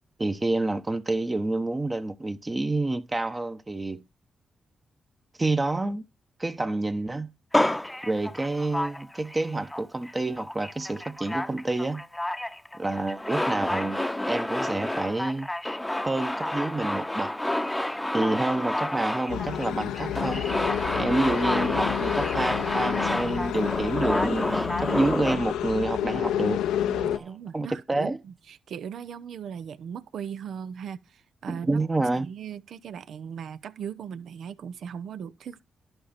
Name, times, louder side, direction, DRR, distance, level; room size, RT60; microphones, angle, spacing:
voice 1, 0.2-4.0 5.4-6.0 6.4-7.3 8.0-12.0 12.8-15.5 16.0-17.3 18.1-20.5 20.9-26.6 27.1-28.2 31.5-32.3, right 2 dB, 30° right, 1.1 m, -28 dB
Male speech man speaking, 7.5-9.4 9.7-10.1 10.4-25.4, left 1 dB, 10° left, 0.8 m, -29 dB
sound 1, 19.3-27.2, left 10 dB, 90° left, 0.6 m, -29 dB
voice 2, 26.8-35.6, right 8 dB, 75° right, 0.7 m, -38 dB
11.0 x 5.2 x 4.4 m
supercardioid pair, 50°, 0 cm